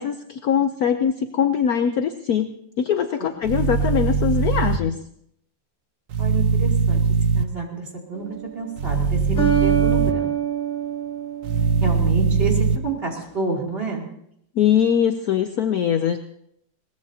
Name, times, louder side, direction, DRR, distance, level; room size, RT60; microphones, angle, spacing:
voice 1, 0.0-2.5 2.8-5.0 14.5-16.2, left 8 dB, 65° left, 7 dB, 1.0 m, -22 dB
sound 1, 3.4-4.8 6.1-7.4 8.8-10.1 11.4-12.8, right 5 dB, 55° right, 1.0 m, -21 dB
voice 2, 6.2-7.0 7.3-10.3 11.8-14.1, right 4 dB, 30° right, -1 dB, 3.0 m, -28 dB
sound 2, 8.2-8.7 9.4-12.3, right 8 dB, 40° left, 2.0 m, -25 dB
21.5 x 19.0 x 2.8 m, 0.74 s
omnidirectional pair, 2.1 m